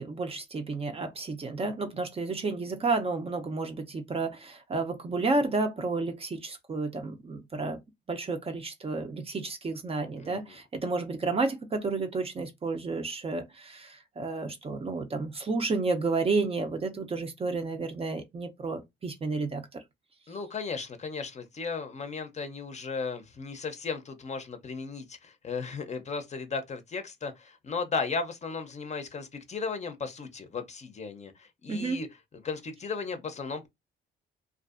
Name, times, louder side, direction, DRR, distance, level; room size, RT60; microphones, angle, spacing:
voice 1, 0.0-7.8 8.1-19.8 31.7-32.0, right 3 dB, 30° right, 0.5 m, -31 dB
voice 2, 10.2-10.6 20.3-32.1 32.4-33.7, left 4 dB, 35° left, 0.6 m, -35 dB
2.5 x 2.3 x 2.4 m
cardioid pair, 90°, 20 cm